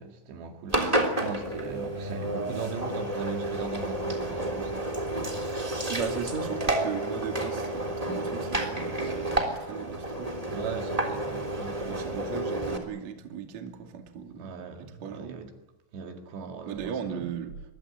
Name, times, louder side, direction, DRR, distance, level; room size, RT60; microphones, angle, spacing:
voice 1, 0.0-4.9 10.5-12.6 14.4-15.5 15.9-17.4, right 5 dB, 70° right, 4.2 m, -39 dB
Engine, 0.7-12.8, right 1 dB, 10° right, 2.6 m, -30 dB
voice 2, 5.9-10.4 11.8-14.5 15.0-15.4 16.7-17.5, right 7 dB, 45° right, 3.0 m, -37 dB
24.0 x 22.5 x 9.8 m
omnidirectional pair, 5.4 m